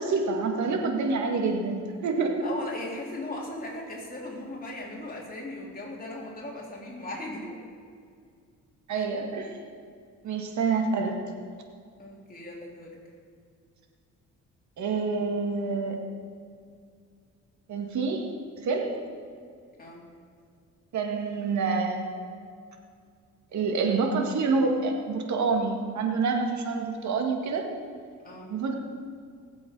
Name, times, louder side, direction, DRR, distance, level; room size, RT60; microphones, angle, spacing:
voice 1, 0.0-2.4 8.9-9.6 10.2-11.3 14.8-16.1 17.7-18.3 18.6-19.0 20.9-22.2 23.5-27.6 28.5-28.7, right 4 dB, 70° right, 2 dB, 2.1 m, -27 dB
voice 2, 2.4-7.6 8.9-9.0 12.0-13.0 19.8-20.1 28.2-28.5, left 1 dB, 30° left, -3 dB, 3.7 m, -38 dB
18.5 x 7.8 x 5.5 m, 2.2 s
cardioid pair, 90°, 30 cm